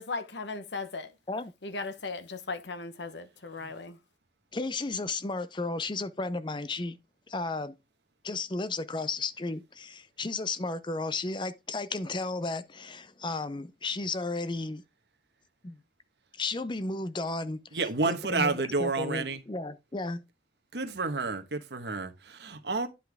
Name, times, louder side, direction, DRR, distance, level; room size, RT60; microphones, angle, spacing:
voice 1, 0.0-1.1 1.6-4.0, left 3 dB, 80° left, 1.0 m, -37 dB
voice 2, 4.5-7.0 7.3-7.7 8.2-14.8 15.6-15.8 16.4-17.6 18.1-20.2, left 3 dB, 25° left, 0.6 m, -33 dB
voice 3, 17.7-19.4 20.7-22.9, right 3 dB, 70° right, 1.3 m, -30 dB
10.0 x 5.7 x 3.5 m
head